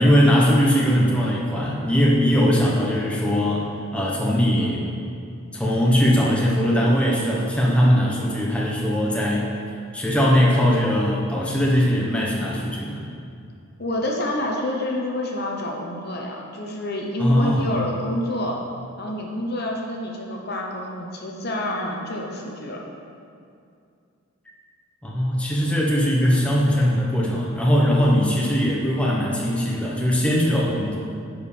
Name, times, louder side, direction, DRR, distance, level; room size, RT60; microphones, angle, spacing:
voice 1, 0.0-3.7 3.9-4.8 5.5-9.5 9.9-13.0 17.2-17.7 25.0-30.9, equal, 5° left, -4 dB, 0.9 m, -20 dB
voice 2, 13.8-18.6 19.0-22.8 25.5-25.8, left 1 dB, 45° left, 0 dB, 0.9 m, -28 dB
10.5 x 4.8 x 5.0 m, 2.4 s
head